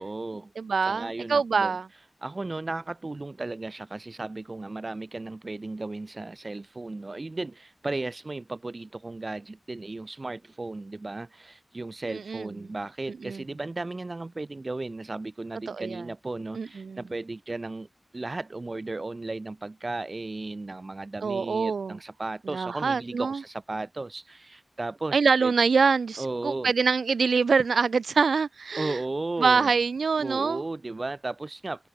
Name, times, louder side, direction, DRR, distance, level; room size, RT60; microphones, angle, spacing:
voice 1, 0.0-0.5 0.8-1.8 2.2-17.9 18.1-25.5 26.2-26.7 28.8-29.7 30.2-31.9, right 2 dB, 45° right, 2.0 m, -35 dB
voice 2, 0.6-1.9 12.1-12.5 13.2-13.4 15.7-16.0 16.6-17.0 21.2-22.0 22.5-23.4 25.1-29.0 29.4-30.6, right 5 dB, 90° right, 0.7 m, -25 dB
cardioid pair, 40°, 0 cm